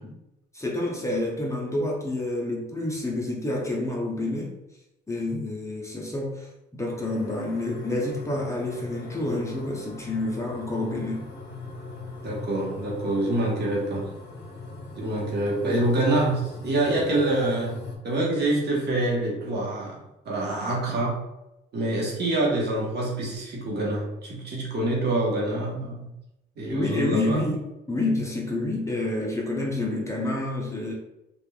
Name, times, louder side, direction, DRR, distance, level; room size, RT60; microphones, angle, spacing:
voice 1, 0.5-4.5 5.1-11.3 26.7-30.9, left 2 dB, 15° left, -2 dB, 0.6 m, -28 dB
sound 1, 7.0-18.0, left 3 dB, 60° left, 0.7 m, -40 dB
voice 2, 12.2-14.1 15.0-17.8 18.0-20.0 20.2-21.2 21.7-26.1 26.6-27.4, right 2 dB, 55° right, -3 dB, 1.0 m, -26 dB
3.1 x 2.4 x 2.2 m, 0.91 s
cardioid pair, 90°, 20 cm